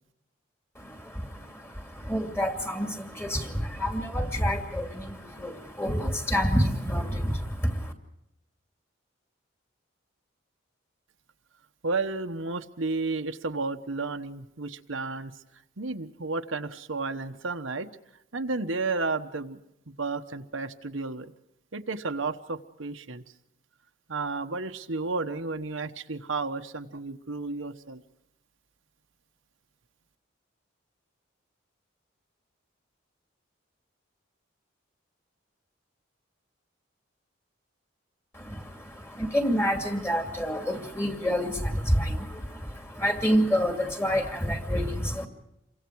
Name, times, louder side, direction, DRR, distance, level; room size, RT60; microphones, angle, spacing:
voice 1, 0.8-7.9 38.3-45.3, equal, 10° left, 4 dB, 2.5 m, -28 dB
voice 2, 11.8-15.3 15.8-17.9 18.3-19.6 20.0-21.3 21.7-23.2 24.1-28.0, right 3 dB, 75° right, 6 dB, 1.1 m, -32 dB
28.5 x 24.0 x 4.7 m, 0.83 s
head